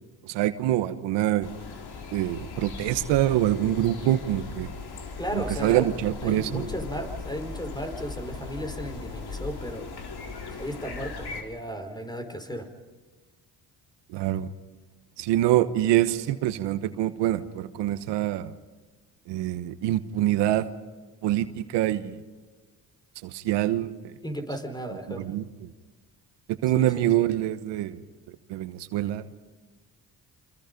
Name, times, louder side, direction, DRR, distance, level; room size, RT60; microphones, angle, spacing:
voice 1, 0.2-1.5 2.1-4.7 5.3-6.7 14.1-14.5 15.2-18.5 19.3-20.6 21.2-22.2 23.2-23.9 25.1-25.4 26.6-28.0 28.5-29.2, right 13 dB, 90° right, 11 dB, 1.2 m, -25 dB
sound 1, 1.4-11.4, left 4 dB, 65° left, 4.0 m, -38 dB
voice 2, 5.2-5.9 6.2-9.9 10.5-12.7 24.2-25.3 26.7-27.1, equal, 10° left, 7 dB, 4.6 m, -35 dB
28.0 x 26.5 x 5.3 m, 1.4 s
supercardioid pair, 70°, 41 cm